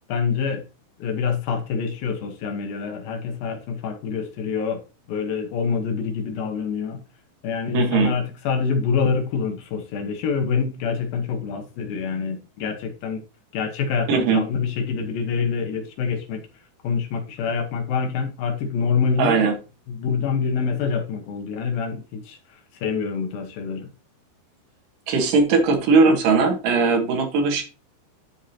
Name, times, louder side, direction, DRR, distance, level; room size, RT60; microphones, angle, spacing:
voice 1, 0.1-0.6 1.0-4.8 5.1-7.0 7.4-13.2 13.5-16.4 16.8-19.4 19.9-22.4 22.8-23.9, left 5 dB, 70° left, 2.7 m, -26 dB
voice 2, 7.7-8.1 14.1-14.4 19.2-19.5 25.1-27.6, right 4 dB, 60° right, 2.6 m, -19 dB
12.5 x 4.9 x 2.8 m
omnidirectional pair, 4.8 m